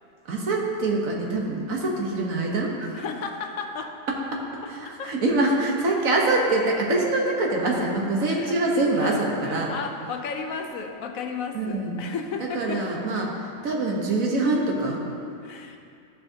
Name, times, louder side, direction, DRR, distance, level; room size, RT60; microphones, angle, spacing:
voice 1, 0.3-2.9 4.7-4.8 5.0-9.7 11.5-12.0 12.5-13.3 13.6-15.0, right 2 dB, 75° right, -1 dB, 1.6 m, -24 dB
voice 2, 2.9-4.0 4.6-5.1 7.0-7.1 7.7-7.8 8.2-12.9 15.1-15.8, left 5 dB, 80° left, 4 dB, 1.1 m, -34 dB
13.0 x 6.2 x 2.8 m, 2.5 s
omnidirectional pair, 1.4 m